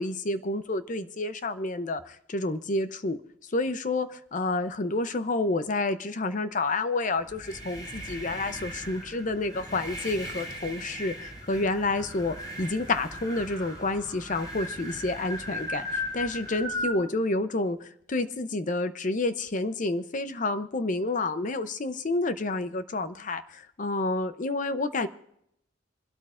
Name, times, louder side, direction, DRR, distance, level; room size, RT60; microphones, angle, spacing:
voice 1, 0.0-25.1, left 2 dB, 40° left, 12 dB, 0.6 m, -29 dB
sound 1, 7.2-17.0, left 1 dB, 20° left, 5.4 m, -37 dB
27.0 x 12.5 x 2.5 m, 0.76 s
head